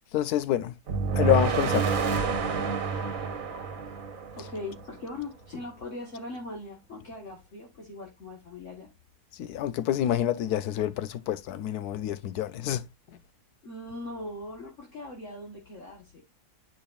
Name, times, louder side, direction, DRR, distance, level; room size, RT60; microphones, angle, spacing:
voice 1, 0.1-0.7 1.2-1.9 9.4-12.8, left 11 dB, 80° left, 1.2 m, -27 dB
sound 1, 0.9-4.9, right 5 dB, 60° right, 1.3 m, -28 dB
voice 2, 4.4-8.9 13.6-16.2, left 2 dB, 50° left, 1.7 m, -40 dB
8.7 x 5.2 x 2.4 m
omnidirectional pair, 1.7 m